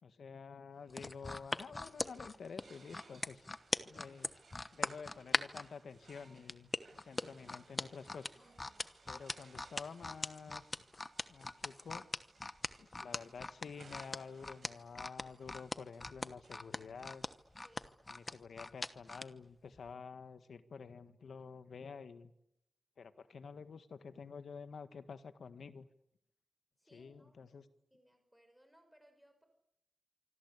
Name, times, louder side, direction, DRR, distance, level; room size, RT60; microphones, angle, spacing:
voice 1, 0.0-3.5 3.8-4.3 4.7-8.5 9.1-10.8 11.3-12.1 12.8-17.2 18.1-22.3 23.0-25.9 26.9-27.7, left 5 dB, 75° left, 11 dB, 1.6 m, -50 dB
sound 1, 0.7-18.3, right 4 dB, 55° right, 6.2 m, -65 dB
sound 2, 0.9-5.7 6.5-19.3 19.7-19.9, left 2 dB, 20° left, 1.0 m, -40 dB
voice 2, 17.6-18.0 26.8-29.5, equal, ahead, 6 dB, 5.7 m, -67 dB
26.0 x 25.5 x 8.4 m, 0.82 s
wide cardioid pair, 175°, 0 cm